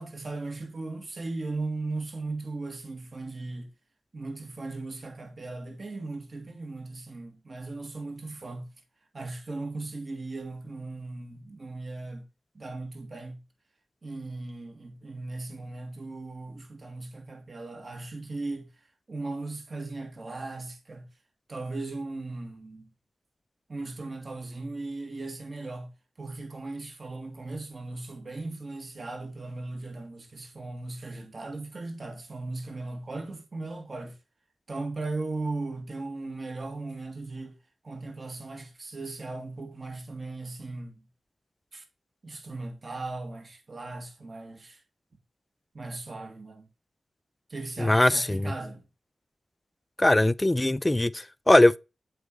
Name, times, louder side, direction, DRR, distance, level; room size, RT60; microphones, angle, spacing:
voice 1, 0.0-3.7 4.1-8.7 9.1-12.3 12.5-13.4 14.0-18.7 19.1-21.1 21.5-22.9 23.7-25.9 26.2-34.2 34.7-37.6 37.8-41.1 41.7-41.8 42.2-44.8 45.7-46.7 47.5-48.8, right 2 dB, 50° right, 2.1 m, -37 dB
voice 2, 47.8-48.5 50.0-51.8, left 1 dB, 20° left, 0.4 m, -21 dB
7.9 x 3.9 x 4.6 m
cardioid pair, 45°, 0 cm